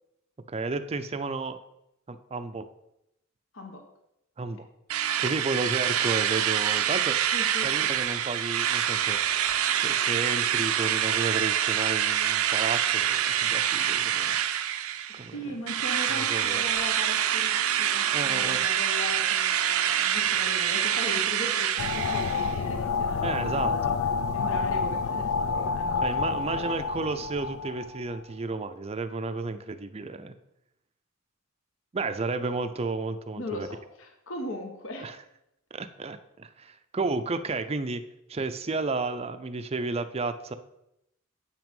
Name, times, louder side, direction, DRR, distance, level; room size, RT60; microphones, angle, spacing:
voice 1, 0.5-1.6 2.1-2.7 4.4-4.7 5.2-7.2 7.6-9.2 9.8-14.4 15.1-15.6 16.1-16.6 18.1-18.6 23.2-24.0 26.0-30.3 31.9-33.7 35.0-35.1 35.7-38.0 38.3-40.5, right 3 dB, 30° right, 9 dB, 0.5 m, -32 dB
Drill, 4.9-15.3 15.7-22.6, right 10 dB, 90° right, 0.6 m, -26 dB
voice 2, 7.3-7.9 15.1-23.8 24.3-26.7 33.3-35.2, left 1 dB, 65° left, 3 dB, 1.2 m, -39 dB
sound 1, 21.8-28.2, left 5 dB, 80° left, 0.5 m, -28 dB
8.2 x 6.0 x 5.3 m, 0.83 s
head